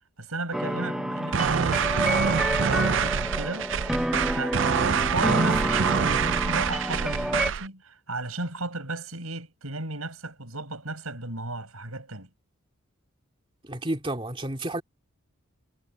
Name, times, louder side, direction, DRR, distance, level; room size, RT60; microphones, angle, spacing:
voice 1, 0.2-3.7 4.3-12.3, right 2 dB, 90° right, 7.3 m, -35 dB
sound 1, 0.5-7.5, equal, ahead, 0.9 m, -29 dB
sound 2, 1.3-7.7, right 6 dB, 60° right, 0.5 m, -25 dB
voice 2, 13.6-14.8, right 1 dB, 25° right, 2.6 m, -31 dB
head